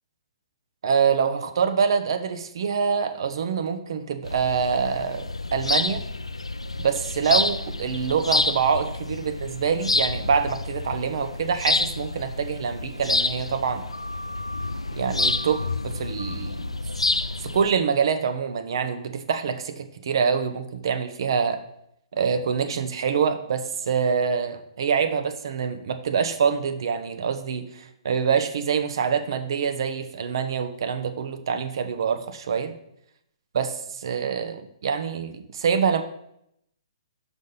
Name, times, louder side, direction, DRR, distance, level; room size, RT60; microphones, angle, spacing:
voice 1, 0.8-5.3 5.5-6.0 6.8-13.8 14.9-16.7 17.4-21.6 22.1-32.7 33.5-36.0, right 6 dB, 50° right, 8 dB, 0.8 m, -25 dB
sound 1, 4.2-17.7, left 2 dB, 80° left, 0.4 m, -28 dB
6.4 x 5.2 x 5.5 m, 0.75 s
figure-of-eight pair, 125°, 3 cm